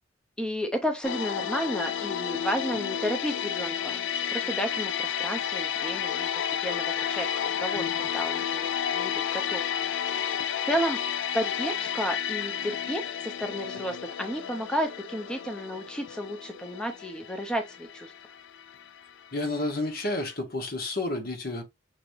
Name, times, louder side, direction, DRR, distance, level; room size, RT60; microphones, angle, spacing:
voice 1, 0.4-4.0 4.3-6.3 6.6-7.8 8.1-8.7 8.9-9.7 10.7-11.0 11.3-18.1, equal, 5° left, 0.6 m, -32 dB
sound 1, 1.0-19.9 20.1-20.3, left 8 dB, 70° left, 0.4 m, -32 dB
voice 2, 19.3-21.6, left 2 dB, 55° left, 1.3 m, -30 dB
6.0 x 3.2 x 2.6 m
head